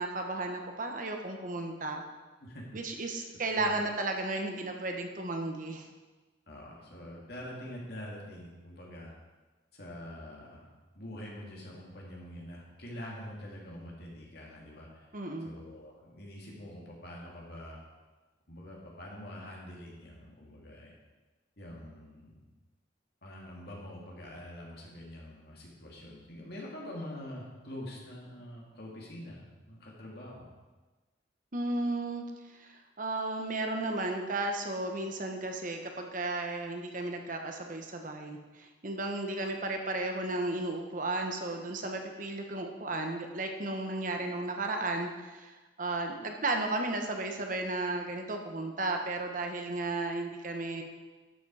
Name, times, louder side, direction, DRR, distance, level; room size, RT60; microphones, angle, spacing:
voice 1, 0.0-2.0 2.7-5.9 15.1-15.5 31.5-50.8, right 2 dB, 45° right, 3 dB, 1.0 m, -34 dB
voice 2, 2.4-3.2 3.5-3.8 6.5-9.2 9.7-10.7 10.9-17.8 18.5-20.9 21.6-22.4 23.2-30.6, left 1 dB, 55° left, -3 dB, 2.6 m, -45 dB
11.5 x 7.4 x 4.8 m, 1.2 s
head